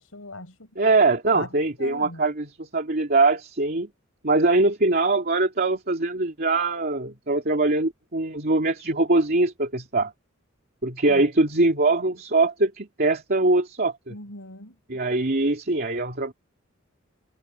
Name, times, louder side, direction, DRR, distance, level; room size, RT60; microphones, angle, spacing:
voice 1, 0.0-0.7 1.3-1.5 1.8-2.3 11.1-11.2 14.1-14.7, left 2 dB, 85° left, 5.2 m, -39 dB
voice 2, 0.8-3.9 4.2-10.1 10.8-14.1 14.9-16.3, right 2 dB, 50° right, 2.8 m, -22 dB
head